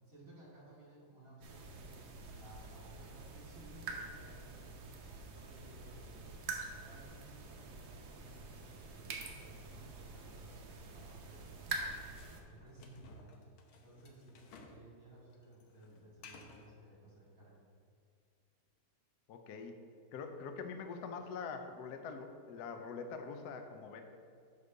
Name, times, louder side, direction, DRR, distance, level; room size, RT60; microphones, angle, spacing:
voice 1, 0.1-11.5 12.4-17.6 20.1-20.3, right 1 dB, 40° right, -6 dB, 2.3 m, -58 dB
sound 1, 1.4-12.4, right 3 dB, 60° right, 1.3 m, -46 dB
sound 2, 11.7-14.8 15.1-16.7, left 4 dB, 85° left, 1.7 m, -57 dB
voice 2, 19.3-19.8 20.1-24.0, left 5 dB, 65° left, 5 dB, 1.0 m, -44 dB
9.7 x 3.7 x 6.5 m, 2.3 s
omnidirectional pair, 2.2 m